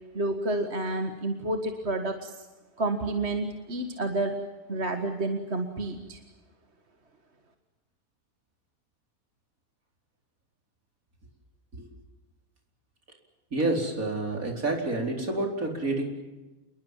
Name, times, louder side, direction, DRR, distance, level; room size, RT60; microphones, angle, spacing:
voice 1, 0.1-2.5 2.8-4.4 4.7-6.2, right 2 dB, 45° right, 6 dB, 2.1 m, -30 dB
voice 2, 13.5-16.0, right 2 dB, 65° right, 3 dB, 4.9 m, -28 dB
28.0 x 21.5 x 7.5 m, 1.1 s
omnidirectional pair, 1.6 m